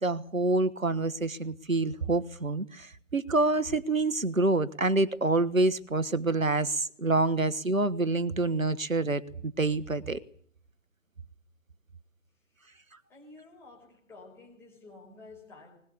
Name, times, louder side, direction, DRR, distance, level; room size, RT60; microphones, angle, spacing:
voice 1, 0.0-10.2, right 2 dB, 85° right, 1.4 m, -27 dB
voice 2, 13.1-15.8, left 3 dB, 5° left, 5.4 m, -51 dB
20.5 x 20.0 x 8.4 m
figure-of-eight pair, 145°, 39 cm